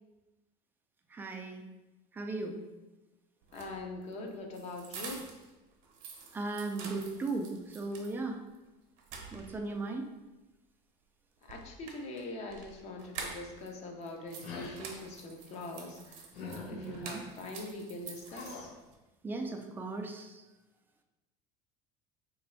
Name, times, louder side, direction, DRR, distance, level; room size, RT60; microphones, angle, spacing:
voice 1, 1.1-1.6 2.1-2.6 6.3-8.4 9.3-10.1 16.7-17.2 19.2-20.4, right 3 dB, 10° right, 4 dB, 0.3 m, -37 dB
sound 1, 3.4-5.5 5.8-8.2 8.5-8.6 9.0-9.8 11.4-13.7 14.0-18.9, right 5 dB, 70° right, 0.8 m, -47 dB
voice 2, 3.5-5.3 11.4-16.3 16.6-18.7, left 2 dB, 40° left, 2 dB, 0.6 m, -43 dB
sound 2, 14.4-14.8 16.3-17.2 18.3-18.7, left 4 dB, 70° left, 0.8 m, -43 dB
3.0 x 2.6 x 4.3 m, 1.1 s
cardioid pair, 140°, 18 cm